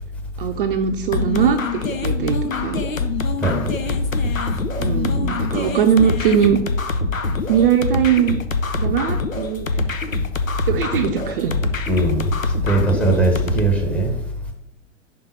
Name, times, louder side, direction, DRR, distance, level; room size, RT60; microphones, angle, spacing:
voice 1, 0.4-2.9 4.8-6.6 7.5-8.4 8.8-9.8 10.7-11.5, right 8 dB, 45° right, 0.5 m, -20 dB
sound 1, 1.1-13.6, left 3 dB, 85° left, 0.7 m, -24 dB
voice 2, 3.4-3.7 11.9-12.3 12.6-14.1, right 2 dB, 5° left, 0.8 m, -19 dB
5.5 x 3.6 x 5.4 m
figure-of-eight pair, 105°, 39 cm